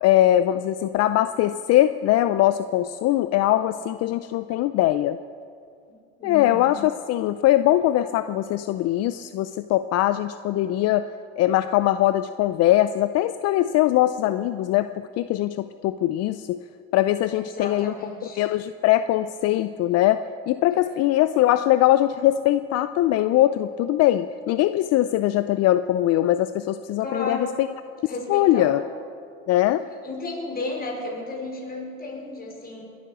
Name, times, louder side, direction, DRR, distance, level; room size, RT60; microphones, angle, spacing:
voice 1, 0.0-5.2 6.2-11.1 11.4-14.9 15.2-16.6 16.9-17.9 18.4-27.7 28.3-28.8 29.5-29.8, left 14 dB, 60° left, 12 dB, 0.5 m, -21 dB
voice 2, 6.2-6.7 17.4-18.4 27.0-27.6 28.1-28.8 30.0-32.8, left 2 dB, 30° left, -1 dB, 4.8 m, -33 dB
21.0 x 9.4 x 6.2 m, 2.3 s
supercardioid pair, 90°, 29 cm